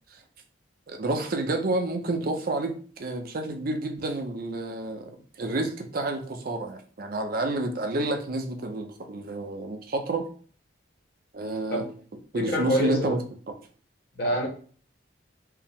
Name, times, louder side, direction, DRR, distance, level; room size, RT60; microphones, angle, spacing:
voice 1, 0.9-10.3 11.3-11.9 12.3-13.2 13.5-13.6, right 2 dB, 45° right, 0.5 m, -29 dB
voice 2, 12.3-13.1 14.2-14.5, equal, 50° left, 1.2 m, -26 dB
4.5 x 2.0 x 3.5 m
head